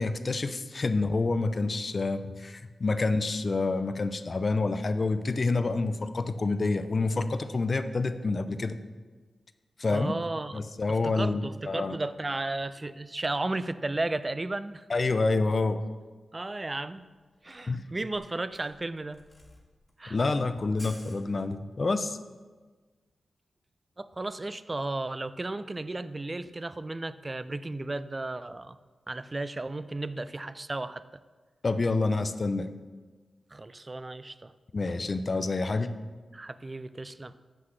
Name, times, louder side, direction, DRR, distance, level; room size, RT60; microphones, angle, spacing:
voice 1, 0.0-8.8 9.8-10.1 10.5-12.0 14.9-15.8 17.7-17.9 20.1-22.2 31.6-32.7 34.7-35.9, left 3 dB, 50° left, 10 dB, 0.4 m, -28 dB
voice 2, 9.9-14.9 16.3-17.0 17.4-19.2 20.0-20.2 24.0-28.8 29.1-31.0 33.5-34.5 36.3-37.3, right 2 dB, 30° right, 14 dB, 0.3 m, -34 dB
Camera, 17.3-21.9, left 1 dB, 20° left, 1.7 m, -53 dB
7.6 x 5.7 x 3.2 m, 1.4 s
cardioid pair, 55°, 0 cm